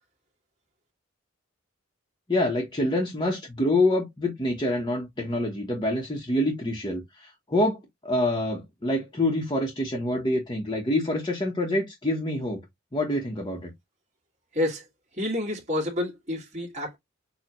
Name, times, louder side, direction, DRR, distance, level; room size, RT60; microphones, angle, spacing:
voice 1, 2.3-12.6 12.9-13.7, left 1 dB, 20° left, 1.0 m, -26 dB
voice 2, 15.2-17.0, left 1 dB, 35° right, 2.0 m, -29 dB
6.7 x 2.4 x 3.0 m
head